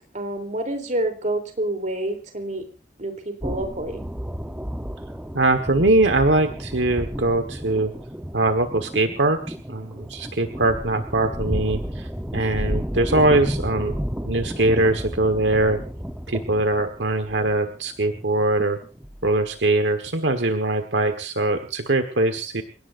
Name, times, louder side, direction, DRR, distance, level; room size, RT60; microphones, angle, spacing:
voice 1, 0.1-2.6 3.0-4.0, right 1 dB, 45° right, 5 dB, 3.5 m, -28 dB
sound 1, 3.4-19.6, equal, 5° right, 0.9 m, -32 dB
voice 2, 5.3-7.9 8.3-13.9 14.2-15.8 16.3-18.8 19.2-22.6, right 2 dB, 75° right, 6 dB, 1.5 m, -22 dB
29.5 x 17.5 x 2.6 m, 0.37 s
head